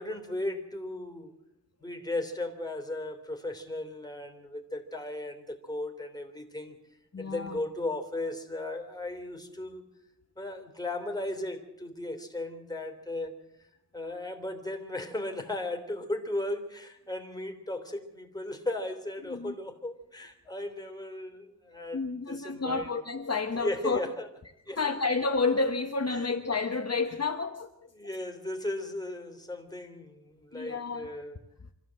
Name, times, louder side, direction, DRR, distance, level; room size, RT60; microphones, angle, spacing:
voice 1, 0.0-1.3 1.8-6.8 7.2-9.8 10.4-13.3 13.6-13.7 13.9-22.0 22.3-22.9 23.5-24.3 24.7-24.9 26.1-26.3 27.9-31.4, left 1 dB, 10° left, 3.3 m, -36 dB
voice 2, 7.1-7.6 19.3-19.5 21.9-24.0 24.8-27.7 30.5-31.1, left 4 dB, 40° left, 1.3 m, -30 dB
25.5 x 15.0 x 7.7 m
wide cardioid pair, 90°, 40 cm